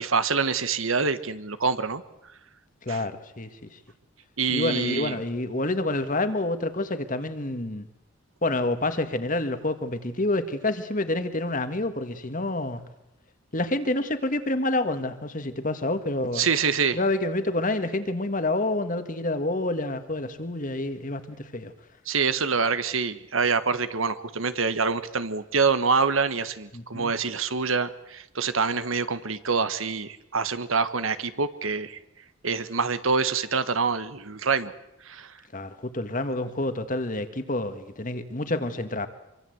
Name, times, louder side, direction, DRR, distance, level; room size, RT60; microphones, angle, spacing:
voice 1, 0.0-2.0 2.9-3.0 4.4-5.2 16.3-17.0 22.0-32.0 32.4-34.7 35.0-35.3, right 5 dB, 80° right, 1.5 m, -26 dB
voice 2, 2.8-3.8 4.5-7.9 8.4-12.8 13.5-16.4 16.9-21.7 26.7-27.1 35.5-39.1, left 2 dB, 40° left, 1.8 m, -28 dB
26.0 x 24.0 x 8.0 m
head